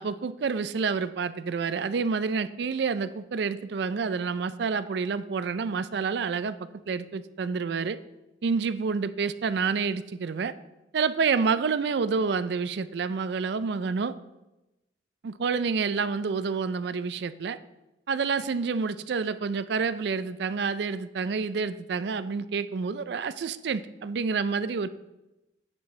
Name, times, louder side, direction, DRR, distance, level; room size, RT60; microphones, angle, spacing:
voice 1, 0.0-8.0 8.4-10.5 10.9-14.1 15.2-17.6 18.1-24.9, right 5 dB, 60° right, 14 dB, 0.4 m, -28 dB
9.6 x 7.2 x 3.2 m, 0.97 s
head